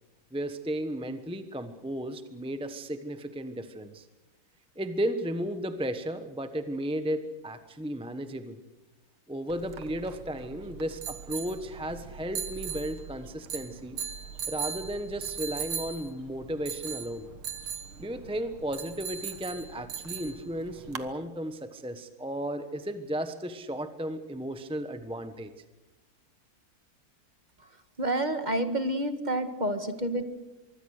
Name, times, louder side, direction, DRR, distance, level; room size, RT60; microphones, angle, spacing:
voice 1, 0.3-4.1 4.8-8.6 9.3-14.0 14.5-17.3 18.0-25.5, right 1 dB, 5° right, 9 dB, 0.7 m, -34 dB
sound 1, 9.5-21.1, right 7 dB, 80° right, 2.3 m, -39 dB
voice 2, 28.0-30.2, right 1 dB, 25° right, 9 dB, 1.5 m, -29 dB
24.5 x 24.0 x 6.6 m, 1.0 s
omnidirectional pair, 2.3 m